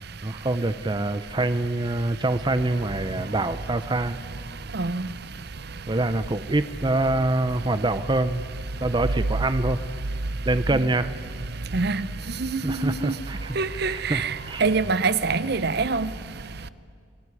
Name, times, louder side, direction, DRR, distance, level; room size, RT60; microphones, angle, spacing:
voice 1, 0.2-4.2 5.9-8.5 8.8-9.8 10.4-11.1 12.6-13.6 13.9-14.6, right 2 dB, 25° right, 0.7 m, -25 dB
voice 2, 4.7-5.1 10.7-10.9 11.7-12.1 12.4-13.1 13.6-16.1, right 4 dB, 55° right, 0.8 m, -25 dB
29.5 x 20.5 x 9.8 m
head